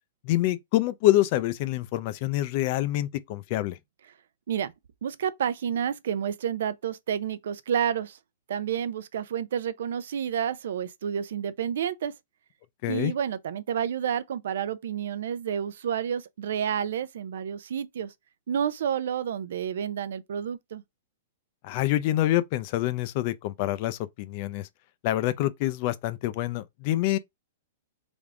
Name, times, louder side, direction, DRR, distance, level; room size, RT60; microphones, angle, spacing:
voice 1, 0.2-3.8 12.8-13.1 21.6-24.7 25.0-27.2, left 15 dB, 35° left, 0.4 m, -26 dB
voice 2, 5.0-8.2 8.5-12.1 12.9-18.1 18.5-20.8, right 8 dB, 70° right, 0.5 m, -30 dB
3.6 x 3.5 x 3.6 m
hypercardioid pair, 165°, 0 cm